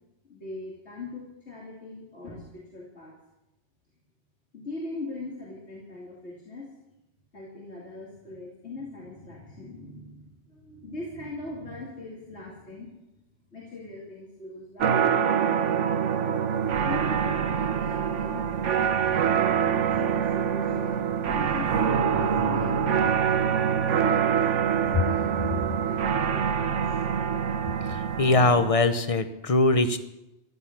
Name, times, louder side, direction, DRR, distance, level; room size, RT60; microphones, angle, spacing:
voice 1, 0.3-3.1 4.5-6.8 7.3-13.0 13.5-15.7 16.7-23.3 23.7-25.3 25.7-27.4, left 2 dB, 65° left, -3 dB, 2.8 m, -40 dB
sound 1, 14.8-28.7, right 8 dB, 80° right, 1.2 m, -25 dB
voice 2, 28.2-30.0, left 2 dB, 30° left, 10 dB, 0.9 m, -21 dB
15.0 x 12.0 x 6.0 m, 0.93 s
omnidirectional pair, 1.2 m